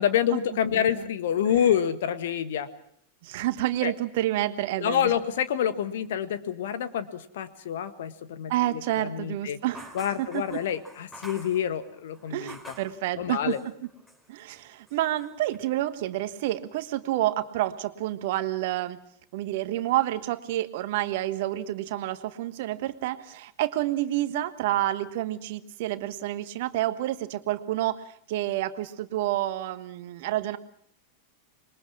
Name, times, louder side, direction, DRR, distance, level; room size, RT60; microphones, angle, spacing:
voice 1, 0.0-2.7 3.8-3.9 4.8-9.6 9.9-12.6 13.2-13.6, left 9 dB, 55° left, 12 dB, 1.5 m, -27 dB
voice 2, 0.7-1.0 3.2-5.1 8.5-10.6 12.3-13.5 14.3-19.0 19.3-28.0 28.3-30.6, right 14 dB, 50° right, 11 dB, 1.3 m, -29 dB
sound 1, 9.7-13.0 13.5-14.2 14.5-15.6, equal, 10° left, 4.8 m, -47 dB
26.5 x 22.0 x 6.0 m, 0.67 s
figure-of-eight pair, 90°, 0 cm